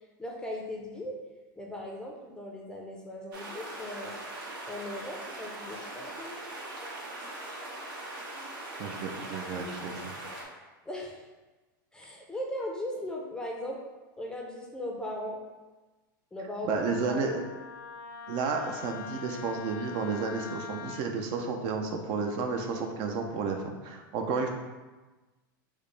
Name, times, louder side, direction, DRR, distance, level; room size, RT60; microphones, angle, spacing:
voice 1, 0.2-1.2 1.6-4.2 4.7-6.4 10.9-11.3 11.9-13.8 14.2-15.4 16.3-16.8 17.1-17.3, left 1 dB, 5° left, -1 dB, 0.5 m, -38 dB
sound 1, 3.3-10.4, right 1 dB, 85° right, 1.0 m, -41 dB
voice 2, 8.8-10.1 16.6-17.4 18.3-24.5, right 4 dB, 45° right, 3 dB, 0.5 m, -32 dB
Wind instrument woodwind instrument, 16.7-21.0, left 7 dB, 75° left, 0.4 m, -43 dB
4.8 x 2.1 x 3.2 m, 1.2 s
supercardioid pair, 125°, 11 cm